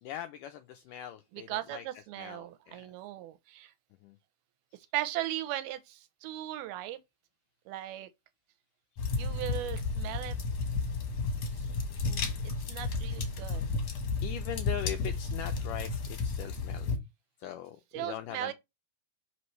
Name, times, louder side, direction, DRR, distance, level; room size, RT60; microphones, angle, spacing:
voice 1, 0.0-3.0 4.0-4.2 4.7-4.8 11.6-11.8 12.2-12.4 14.2-17.0 17.4-18.5, left 10 dB, 85° left, 1.9 m, -42 dB
voice 2, 1.3-3.7 4.9-7.0 7.7-8.1 9.2-10.4 12.0-13.7 17.9-18.5, right 14 dB, 90° right, 2.6 m, -38 dB
sound 1, 9.0-17.0, left 4 dB, 55° left, 1.8 m, -33 dB
6.3 x 5.3 x 3.1 m
omnidirectional pair, 4.4 m